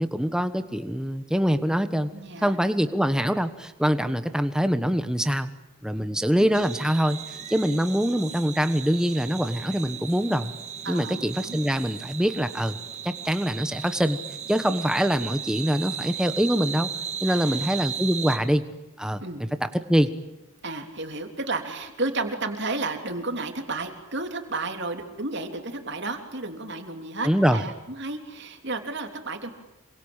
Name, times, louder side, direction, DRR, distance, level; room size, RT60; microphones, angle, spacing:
voice 1, 0.0-2.1 2.4-5.5 5.8-7.2 7.5-10.5 10.9-12.8 13.0-14.2 14.5-16.9 17.2-18.6 19.0-20.1 27.2-27.6, equal, 5° right, 10 dB, 1.2 m, -24 dB
voice 2, 2.1-2.6 5.9-6.5 10.8-11.6 17.3-17.6 19.2-19.4 20.6-29.5, right 3 dB, 50° right, 5 dB, 3.3 m, -32 dB
sound 1, 6.5-18.4, right 8 dB, 30° right, 1.9 m, -36 dB
27.5 x 24.5 x 8.9 m, 1.0 s
head